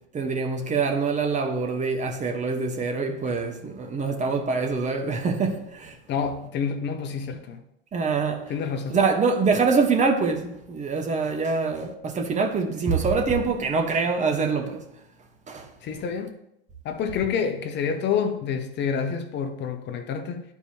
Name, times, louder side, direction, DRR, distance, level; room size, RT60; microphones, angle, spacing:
voice 1, 0.1-6.0 7.9-8.5 8.9-14.8 15.5-15.7, right 4 dB, 25° right, 1.0 m, -25 dB
voice 2, 6.1-7.6 8.5-9.0 15.8-16.4 16.8-20.4, left 6 dB, 40° left, 0.8 m, -28 dB
11.0 x 4.6 x 2.8 m
hypercardioid pair, 90°, 29 cm